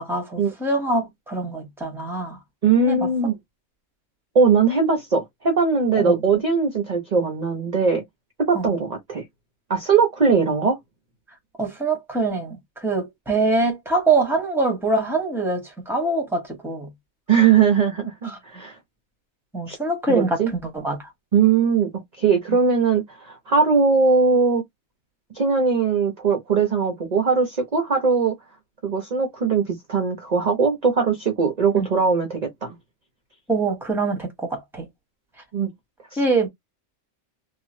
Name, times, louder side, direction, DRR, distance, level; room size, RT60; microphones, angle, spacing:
voice 1, 0.0-2.4 2.9-3.1 5.9-6.2 8.5-8.6 11.6-16.9 18.2-18.4 19.5-20.4 20.7-21.0 31.7-31.9 33.5-34.9 36.2-36.5, right 3 dB, ahead, 1.0 m, -24 dB
voice 2, 2.6-3.4 4.3-8.0 8.4-9.2 9.7-10.8 17.3-18.8 19.7-19.8 20.1-20.5 21.3-21.9 22.2-24.6 25.3-28.3 28.8-32.8 35.5-35.7 36.1-36.2, right 5 dB, 40° right, 0.6 m, -20 dB
3.0 x 2.5 x 2.5 m
omnidirectional pair, 1.4 m